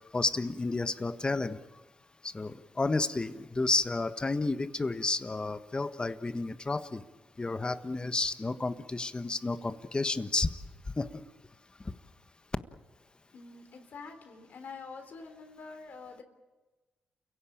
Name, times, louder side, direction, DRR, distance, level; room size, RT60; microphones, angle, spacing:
voice 1, 0.1-1.6 2.2-7.0 7.4-10.5 11.0-11.2, left 3 dB, 30° left, 10 dB, 1.5 m, -31 dB
voice 2, 13.3-16.2, left 4 dB, 65° left, 6 dB, 3.6 m, -46 dB
29.0 x 16.5 x 8.8 m, 1.2 s
supercardioid pair, 60°, 3 cm